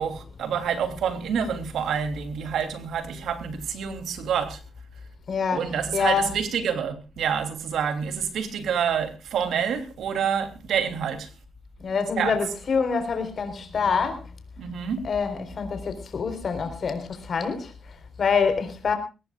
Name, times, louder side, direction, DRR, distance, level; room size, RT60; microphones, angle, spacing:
voice 1, 0.0-4.6 5.5-11.3 12.1-12.4 14.6-15.0, right 7 dB, 90° right, 3.1 m, -27 dB
voice 2, 5.3-5.7 5.9-6.3 11.8-14.2 15.0-19.0, left 5 dB, 55° left, 4.2 m, -26 dB
22.5 x 18.0 x 2.5 m
cardioid pair, 100°, 0 cm